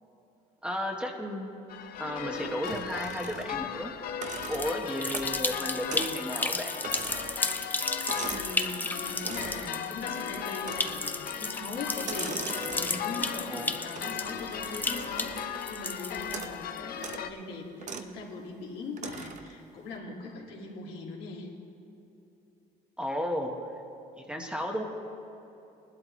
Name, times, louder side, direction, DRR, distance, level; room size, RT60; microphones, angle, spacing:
voice 1, 0.6-1.5 2.0-3.9 4.5-6.7 13.5-13.7 23.0-23.5 24.2-24.8, equal, 5° right, 1 dB, 1.3 m, -33 dB
Church Bells Close A, 1.7-17.3, left 9 dB, 60° left, 0.7 m, -37 dB
sound 1, 2.6-3.7 4.1-5.5 5.9-6.2 6.4-8.6 9.2-9.7 10.6-11.2 11.9-13.2 13.9-15.7 16.2-16.6 16.9-17.3 17.8-18.1 19.0-19.5, right 6 dB, 45° right, 0.8 m, -41 dB
sound 2, 4.3-16.8, left 2 dB, 10° left, 0.5 m, -34 dB
voice 2, 8.1-21.5, left 3 dB, 80° left, -2 dB, 2.3 m, -40 dB
19.0 x 12.0 x 3.2 m, 2.9 s
cardioid pair, 110°, 17 cm